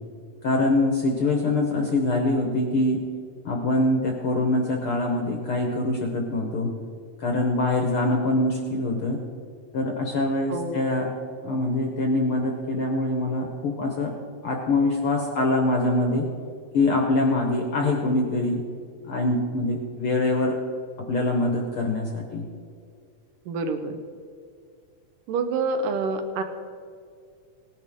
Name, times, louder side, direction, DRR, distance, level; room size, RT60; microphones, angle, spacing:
voice 1, 0.4-3.0 3.4-6.7 7.2-9.2 9.7-11.1 11.4-14.1 14.4-16.3 16.7-18.6 19.0-20.6 21.1-22.4, left 2 dB, 60° left, 1 dB, 1.5 m, -24 dB
voice 2, 10.5-10.9 23.5-24.0 25.3-26.4, right 3 dB, 80° right, 7 dB, 2.5 m, -27 dB
18.0 x 10.5 x 3.7 m, 2.2 s
omnidirectional pair, 3.8 m